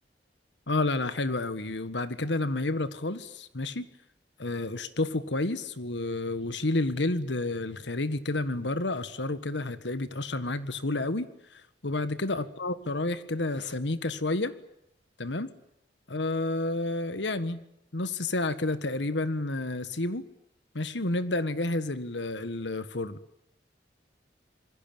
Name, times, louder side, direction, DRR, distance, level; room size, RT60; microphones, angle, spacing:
voice 1, 0.7-3.9 4.4-11.3 11.5-14.5 15.2-15.5 16.1-17.6 17.9-20.2 20.7-23.2, left 2 dB, 85° left, 13 dB, 1.6 m, -30 dB
26.5 x 21.5 x 9.0 m, 0.78 s
head